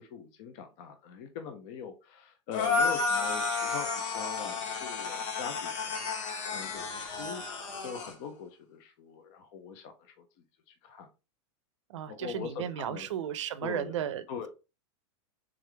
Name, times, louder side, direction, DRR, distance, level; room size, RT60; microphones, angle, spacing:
voice 1, 0.0-6.0 6.5-7.4 7.8-10.2 10.7-11.1 12.1-13.1 13.6-14.0 14.3-14.5, left 6 dB, 30° left, 0.4 m, -42 dB
sound 1, 2.5-8.1, left 4 dB, 80° left, 1.3 m, -32 dB
voice 2, 11.9-14.2, right 10 dB, 70° right, 0.6 m, -34 dB
3.6 x 3.3 x 3.2 m
supercardioid pair, 175°, 16 cm